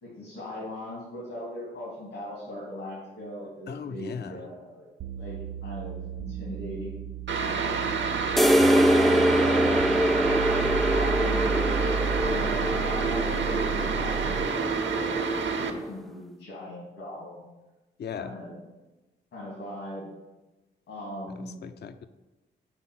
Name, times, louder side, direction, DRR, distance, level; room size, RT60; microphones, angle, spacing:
voice 1, 0.0-4.9 5.2-7.8 9.0-9.7 10.5-17.4 18.1-18.6 19.3-20.1 20.9-21.6, left 1 dB, 75° left, -5 dB, 2.1 m, -39 dB
voice 2, 3.7-4.4 18.0-18.3 21.4-22.1, left 6 dB, 55° left, 10 dB, 0.5 m, -38 dB
sound 1, 5.0-14.6, right 6 dB, 80° right, 0.4 m, -33 dB
sound 2, 7.3-15.7, right 5 dB, 60° right, 0.8 m, -29 dB
sound 3, 8.4-15.9, equal, ahead, 0.4 m, -25 dB
5.7 x 3.8 x 5.8 m, 1.1 s
supercardioid pair, 50°, 21 cm